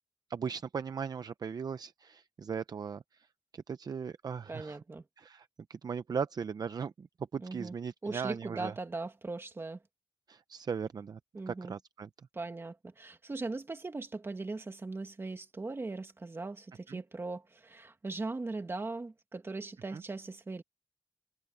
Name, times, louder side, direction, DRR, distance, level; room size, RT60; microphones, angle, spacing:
voice 1, 0.3-3.0 3.5-4.8 5.2-7.1 7.3-8.7 10.3-11.2 11.5-12.1 16.9-17.0 19.9-20.0, right 6 dB, 50° right, 0.6 m, -38 dB
voice 2, 4.5-5.0 7.4-7.7 8.0-9.8 11.3-11.7 12.3-20.6, right 3 dB, 30° right, 1.8 m, -39 dB
wide cardioid pair, 155°, 9 cm